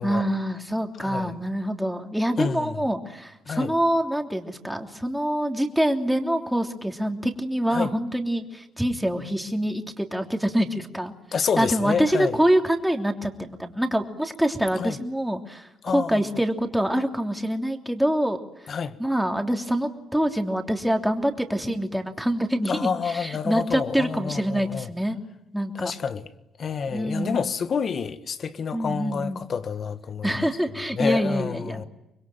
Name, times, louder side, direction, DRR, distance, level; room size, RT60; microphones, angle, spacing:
voice 1, 0.0-11.1 11.6-18.4 18.6-25.2 25.5-25.9 26.9-27.5 28.7-29.4 30.2-31.8, equal, 5° right, 3.1 m, -25 dB
voice 2, 1.0-1.3 2.4-2.8 3.5-3.7 7.7-7.9 11.3-12.4 14.8-15.0 15.8-16.2 18.7-19.0 22.7-24.9 25.8-26.3 26.6-30.5 30.9-31.8, left 6 dB, 50° left, 1.6 m, -28 dB
25.5 x 21.5 x 9.2 m
cardioid pair, 90°, 0 cm